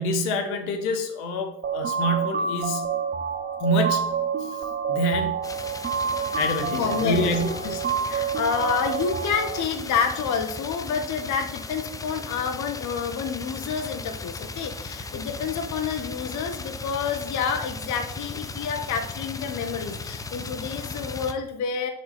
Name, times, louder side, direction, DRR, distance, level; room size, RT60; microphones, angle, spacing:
voice 1, 0.0-2.9 3.6-4.6 4.9-5.5 6.4-7.9, equal, 65° left, 5 dB, 1.2 m, -27 dB
sound 1, 1.6-9.6, right 6 dB, 20° right, 0.9 m, -28 dB
sound 2, 5.4-21.3, left 3 dB, 10° left, 0.3 m, -37 dB
voice 2, 6.7-7.4 8.1-21.9, left 6 dB, 40° left, 5 dB, 0.9 m, -28 dB
6.2 x 5.7 x 4.3 m, 0.81 s
figure-of-eight pair, 60°, 45 cm